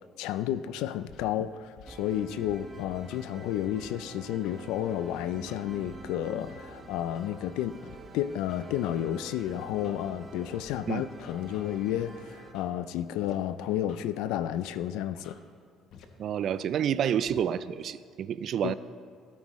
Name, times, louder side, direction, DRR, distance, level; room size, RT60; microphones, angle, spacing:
voice 1, 0.2-7.8 8.1-15.4 18.6-18.7, left 11 dB, 90° left, 13 dB, 0.4 m, -31 dB
Scratching (performance technique), 1.1-1.2 1.8-1.9 2.4-3.2 3.8-3.9 4.4-4.6 5.1-6.0 6.5-6.6 7.1-7.4 7.8-8.0 8.5-9.3 9.8-10.0 10.5-10.7 11.2-12.0 12.5-12.7 13.2-13.3 13.6-14.0 14.5-14.7 15.1-15.3 15.9-16.0 16.6-16.7 17.3-17.4, left 8 dB, 65° left, 0.9 m, -51 dB
sound 1, 1.9-12.5, right 2 dB, 30° right, 0.9 m, -48 dB
voice 2, 16.2-18.7, right 9 dB, 50° right, 15 dB, 0.4 m, -29 dB
16.0 x 9.0 x 3.1 m, 2.3 s
cardioid pair, 125°, 0 cm